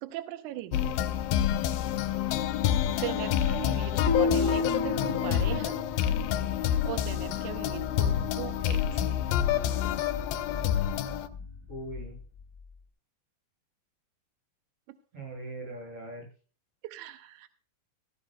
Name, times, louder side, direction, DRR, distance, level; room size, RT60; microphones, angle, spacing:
voice 1, 0.0-0.9 3.0-5.8 6.8-9.0 14.9-15.0 16.8-17.5, right 14 dB, 80° right, 9 dB, 1.8 m, -39 dB
sound 1, 0.7-11.3, left 10 dB, 80° left, 2.3 m, -28 dB
sound 2, 2.3-12.8, left 5 dB, 5° left, 3.7 m, -44 dB
sound 3, 4.1-6.2, left 3 dB, 60° right, 1.8 m, -30 dB
voice 2, 11.7-12.2 15.1-16.3, right 1 dB, 35° right, -1 dB, 8.3 m, -40 dB
16.0 x 14.5 x 2.2 m, 0.38 s
omnidirectional pair, 4.3 m